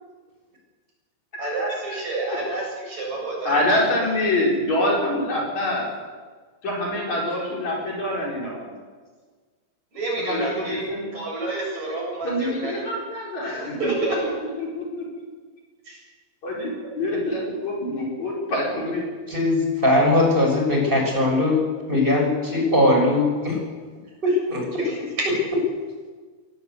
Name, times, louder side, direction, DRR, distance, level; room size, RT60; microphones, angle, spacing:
voice 1, 1.4-3.9 9.9-10.8 11.1-12.9 13.4-14.4 15.8-16.0 24.8-24.9, right 2 dB, 45° right, -2 dB, 8.2 m, -29 dB
voice 2, 3.4-5.8 6.6-8.6 10.3-10.4 10.7-11.1 12.2-13.9 14.2-14.3 14.6-15.0 16.4-16.7 17.0-19.0, left 1 dB, 50° left, -3 dB, 6.6 m, -25 dB
voice 3, 19.3-21.6 21.9-23.6 24.2-24.6, left 1 dB, 15° right, 0 dB, 6.5 m, -20 dB
22.5 x 19.0 x 8.3 m, 1.5 s
omnidirectional pair, 4.3 m